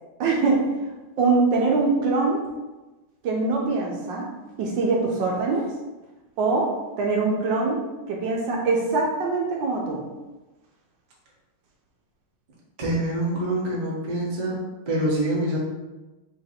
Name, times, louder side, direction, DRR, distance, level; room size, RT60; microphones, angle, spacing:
voice 1, 0.2-0.6 1.2-2.4 3.2-4.3 4.6-5.7 6.4-6.7 7.0-7.8 8.1-10.0, right 3 dB, 70° right, -1 dB, 1.2 m, -23 dB
voice 2, 12.8-14.6 14.9-15.6, right 1 dB, 45° right, -4 dB, 0.5 m, -25 dB
3.9 x 2.5 x 4.1 m, 1.1 s
omnidirectional pair, 2.3 m